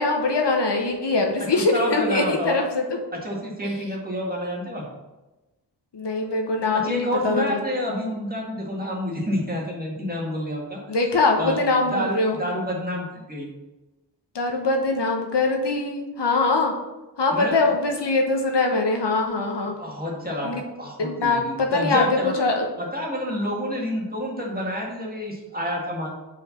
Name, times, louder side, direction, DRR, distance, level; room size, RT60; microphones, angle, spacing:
voice 1, 0.0-3.0 5.9-7.6 10.9-12.4 14.3-16.7 17.2-19.7 20.4-20.6 21.0-22.0 22.4-22.6, left 3 dB, 75° left, 2 dB, 1.2 m, -22 dB
voice 2, 1.5-2.6 3.1-4.8 6.7-10.8 11.4-11.6 11.8-13.5 17.3-17.7 19.8-22.4 22.8-26.1, equal, 20° right, -3 dB, 1.9 m, -28 dB
5.1 x 4.9 x 5.7 m, 1.1 s
wide cardioid pair, 105°, 42 cm